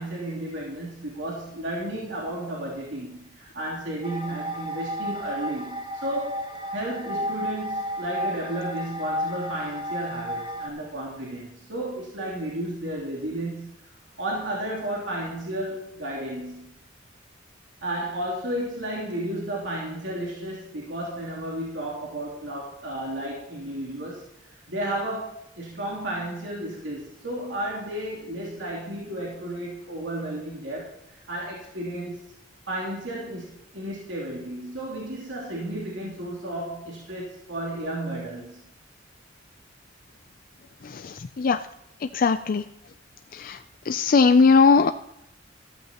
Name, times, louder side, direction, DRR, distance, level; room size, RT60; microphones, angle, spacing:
voice 1, 0.0-13.7 14.2-16.7 17.8-24.2 24.7-30.9 31.3-32.3 32.7-38.6, right 1 dB, 70° right, -4 dB, 3.0 m, -33 dB
sound 1, 4.0-10.7, equal, 25° right, 1.2 m, -32 dB
voice 2, 40.8-41.6 42.1-42.6 43.3-43.6 43.9-44.9, left 4 dB, 45° left, 10 dB, 0.4 m, -19 dB
14.0 x 14.0 x 2.9 m, 0.81 s
head